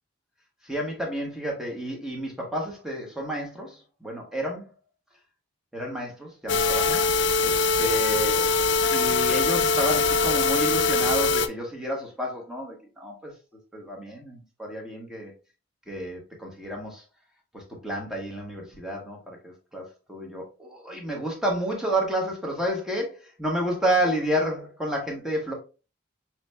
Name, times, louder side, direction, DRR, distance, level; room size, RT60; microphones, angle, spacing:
voice 1, 0.6-4.7 5.7-7.0 7.4-8.5 8.9-13.3 13.7-15.3 15.9-17.0 17.5-25.5, right 1 dB, 5° right, -1 dB, 1.2 m, -30 dB
sound 1, 6.5-11.5, left 4 dB, 60° left, 0.4 m, -22 dB
6.0 x 3.1 x 2.2 m, 0.32 s
head